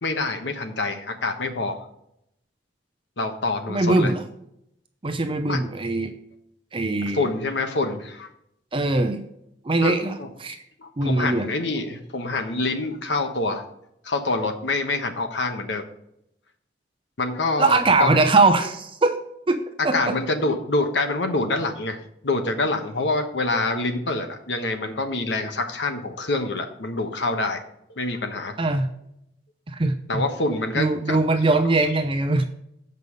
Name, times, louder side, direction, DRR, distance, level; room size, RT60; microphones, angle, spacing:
voice 1, 0.0-1.8 3.2-4.1 5.5-5.6 7.1-8.3 9.8-10.3 10.8-13.6 14.0-15.8 17.2-18.1 19.8-27.6 27.9-28.6 30.1-31.2 31.8-31.9, left 2 dB, 80° left, 6 dB, 1.2 m, -26 dB
voice 2, 3.7-4.2 5.0-6.1 6.7-7.3 8.7-9.2 9.6-10.6 11.0-11.5 17.6-19.2 19.5-20.1 28.6-28.9 29.7-30.2 30.8-32.4, right 3 dB, 30° right, 7 dB, 0.6 m, -21 dB
8.2 x 5.4 x 5.3 m, 0.78 s
head